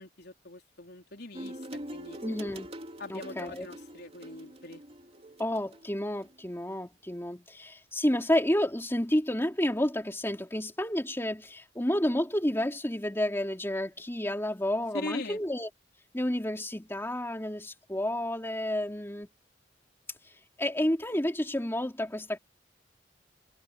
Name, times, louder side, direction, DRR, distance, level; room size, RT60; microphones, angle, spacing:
voice 1, 0.0-1.7 1.9-2.2 3.0-4.8 14.9-15.4, left 2 dB, 60° left, 4.3 m, -41 dB
sound 1, 1.3-6.3, right 1 dB, 35° right, 3.4 m, -44 dB
voice 2, 2.2-2.7 3.1-3.7 5.4-15.7 16.1-19.3 20.6-22.4, left 1 dB, 15° left, 3.1 m, -30 dB
head